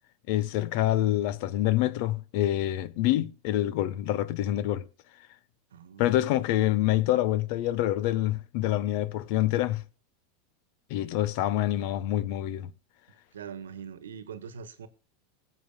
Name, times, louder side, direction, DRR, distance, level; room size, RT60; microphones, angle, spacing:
voice 1, 0.3-4.9 6.0-9.8 10.9-12.7, left 14 dB, 60° left, 0.9 m, -26 dB
voice 2, 5.7-6.0 13.3-14.9, right 7 dB, 85° right, 1.2 m, -42 dB
21.0 x 7.8 x 2.2 m
hypercardioid pair, 100°, 0 cm